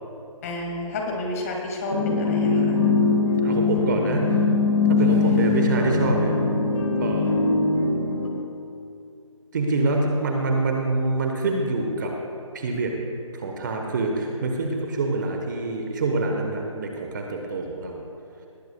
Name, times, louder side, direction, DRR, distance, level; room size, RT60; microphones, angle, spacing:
voice 1, 0.4-2.8 5.1-5.8, left 1 dB, 25° left, 0 dB, 2.0 m, -31 dB
sound 1, 1.9-8.3, left 3 dB, 70° left, 2.1 m, -21 dB
voice 2, 3.4-4.4 4.9-6.4 7.0-7.3 9.5-12.1 12.5-12.9 13.3-18.0, right 2 dB, 35° right, 2 dB, 1.1 m, -26 dB
19.0 x 14.0 x 2.3 m, 2.6 s
figure-of-eight pair, 155°, 18 cm